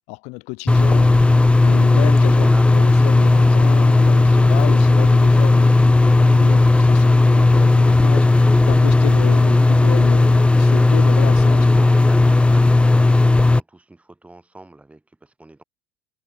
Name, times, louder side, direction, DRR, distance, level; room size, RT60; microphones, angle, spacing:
voice 1, 0.1-11.6, left 28 dB, 70° left, 2.7 m, -32 dB
sound 1, 0.7-13.6, left 2 dB, 10° left, 0.4 m, -14 dB
voice 2, 1.9-3.0 11.4-15.6, right 2 dB, 10° right, 7.9 m, -39 dB
hypercardioid pair, 80°, 12 cm